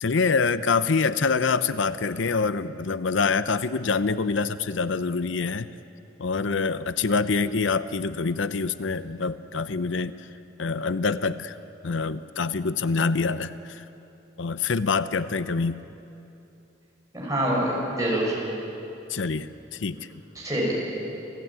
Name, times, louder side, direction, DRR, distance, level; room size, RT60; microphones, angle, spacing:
voice 1, 0.0-5.7 6.2-10.3 10.6-11.6 11.8-13.8 14.4-15.8 19.1-20.1, left 4 dB, 90° left, 13 dB, 0.7 m, -25 dB
voice 2, 17.1-18.3 20.4-20.9, right 1 dB, 20° right, -4 dB, 6.9 m, -25 dB
29.0 x 15.5 x 9.0 m, 2.9 s
head